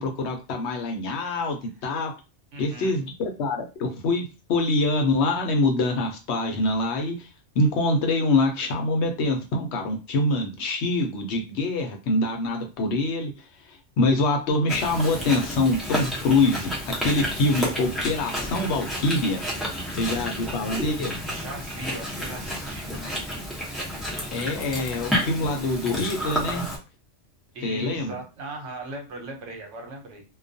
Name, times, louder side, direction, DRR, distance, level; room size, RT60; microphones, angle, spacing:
voice 1, 0.0-2.1 2.6-7.3 7.6-13.3 13.7-19.4 19.9-21.1 24.3-26.7 27.6-28.2, left 2 dB, 70° left, 3 dB, 0.9 m, -25 dB
voice 2, 2.5-3.0 19.9-20.1 21.3-23.3 27.5-30.2, right 2 dB, 80° right, 3 dB, 1.0 m, -39 dB
Chewing mastication, 14.7-26.8, equal, ahead, 0.5 m, -31 dB
2.3 x 2.2 x 2.5 m, 0.30 s
omnidirectional pair, 1.2 m